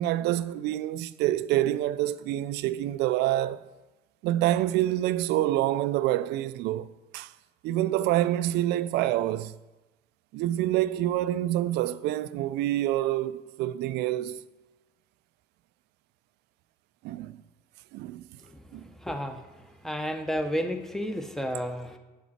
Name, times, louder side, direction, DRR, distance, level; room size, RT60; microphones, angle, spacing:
voice 1, 0.0-3.7 4.2-7.3 7.6-9.6 10.3-14.4 17.0-17.4 17.9-18.2 18.7-18.8, right 14 dB, 85° right, 0.4 m, -27 dB
voice 2, 19.0-19.4 19.8-22.0, equal, ahead, 0.8 m, -31 dB
8.7 x 7.2 x 4.3 m
cardioid pair, 110°, 17 cm